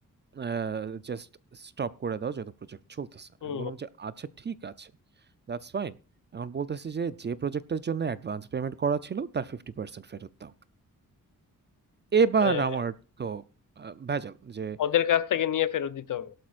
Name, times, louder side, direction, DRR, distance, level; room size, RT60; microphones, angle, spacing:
voice 1, 0.3-1.3 1.5-4.9 5.5-6.0 6.3-10.5 12.1-12.9 13.2-13.4 13.8-14.8, right 6 dB, 35° right, 0.5 m, -31 dB
voice 2, 14.8-16.3, left 10 dB, 75° left, 0.8 m, -27 dB
17.0 x 12.0 x 2.5 m
wide cardioid pair, 140°, 32 cm